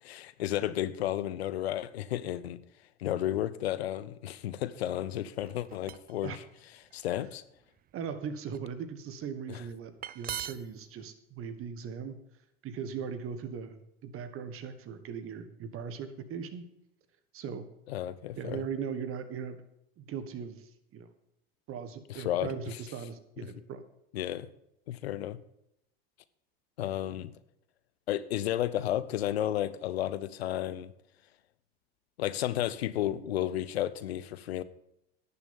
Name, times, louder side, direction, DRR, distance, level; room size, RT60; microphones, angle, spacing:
voice 1, 0.0-2.6 3.0-6.4 6.9-7.4 9.5-9.6 17.9-18.6 22.1-22.8 23.4-23.5 24.1-24.5 24.9-25.4 26.8-27.3 28.1-30.9 32.2-34.6, left 12 dB, 85° left, 16 dB, 0.7 m, -32 dB
sound 1, 5.4-6.2 6.9-7.2 7.8-8.6 9.7-9.8 10.0-10.8, right 10 dB, 30° right, 0.5 m, -40 dB
voice 2, 7.9-12.2 12.6-16.7 17.3-17.7 18.3-19.6 20.0-21.1 21.7-23.8, right 6 dB, 45° right, 11 dB, 1.6 m, -39 dB
11.0 x 7.0 x 7.1 m, 0.80 s
hypercardioid pair, 85°, 31 cm